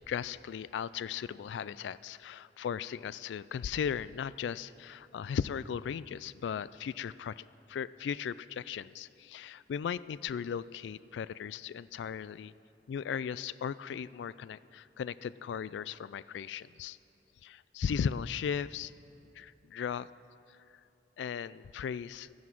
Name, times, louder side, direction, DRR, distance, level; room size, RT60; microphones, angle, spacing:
voice 1, 0.1-12.5 12.9-17.0 17.4-18.9 19.4-20.1 21.2-22.3, left 7 dB, 80° left, 18 dB, 0.3 m, -37 dB
13.0 x 9.4 x 6.0 m, 2.9 s
head